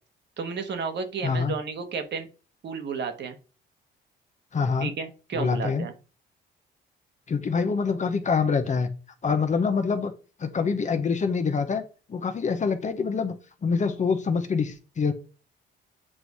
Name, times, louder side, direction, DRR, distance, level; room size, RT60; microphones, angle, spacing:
voice 1, 0.4-2.3 2.6-3.3 4.8-5.9, right 5 dB, 60° right, 7 dB, 1.3 m, -32 dB
voice 2, 1.2-1.6 4.5-4.9 5.3-5.9 7.3-8.9 9.2-10.1 10.4-11.8 12.1-15.1, left 5 dB, 35° left, 8 dB, 0.8 m, -25 dB
7.6 x 2.6 x 4.7 m, 0.34 s
cardioid pair, 90°, 20 cm